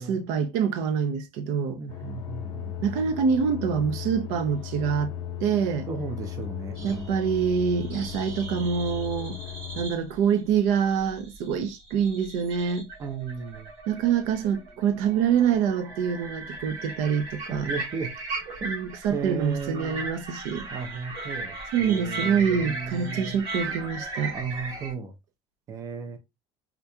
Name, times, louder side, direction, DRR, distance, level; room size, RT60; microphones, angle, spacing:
voice 1, 0.0-1.8 2.8-5.1 5.4-5.9 6.8-9.4 9.8-12.9 13.9-17.7 18.6-20.7 21.7-24.4, right 7 dB, 75° right, 0.6 m, -26 dB
voice 2, 1.7-3.0 5.9-7.3 13.0-13.7 17.5-18.1 18.6-18.7 19.1-20.1 20.7-23.4 24.3-25.1 25.7-26.2, right 5 dB, 25° right, 0.5 m, -35 dB
sound 1, 1.9-9.9, left 11 dB, 35° left, 0.5 m, -36 dB
sound 2, 6.8-24.9, right 3 dB, 45° right, 1.5 m, -38 dB
3.7 x 2.9 x 2.2 m
cardioid pair, 175°, 12 cm